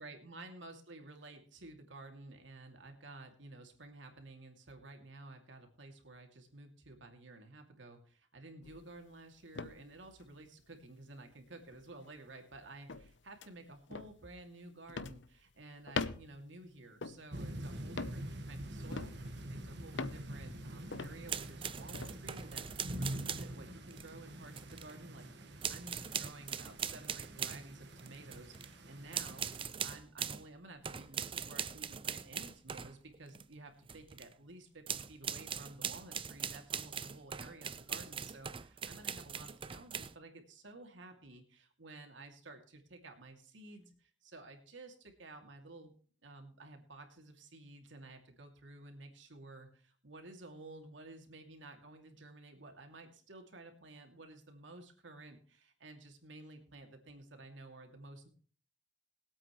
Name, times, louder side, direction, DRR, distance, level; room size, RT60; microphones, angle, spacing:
voice 1, 0.0-29.4 29.8-45.9 46.2-58.3, right 2 dB, 85° right, 4 dB, 2.6 m, -53 dB
sound 1, 8.6-9.0 9.5-10.4 10.8-10.9 11.7-12.1 12.9-13.1 13.4-13.5 13.9-14.1 14.9-15.3 15.9-16.4 17.0-17.4 17.9-18.3 18.9-19.4 19.9-20.3 20.9-21.2 21.9-22.1, left 4 dB, 70° left, 0.8 m, -41 dB
sound 2, 17.3-29.6, right 1 dB, 65° right, 1.6 m, -46 dB
sound 3, 21.3-23.6 23.9-24.9 25.6-27.7 28.0-28.7 29.1-30.5 30.8-33.5 33.9-34.3 34.9-40.1, right 7 dB, 30° right, 0.5 m, -41 dB
22.0 x 8.5 x 3.1 m, 0.43 s
head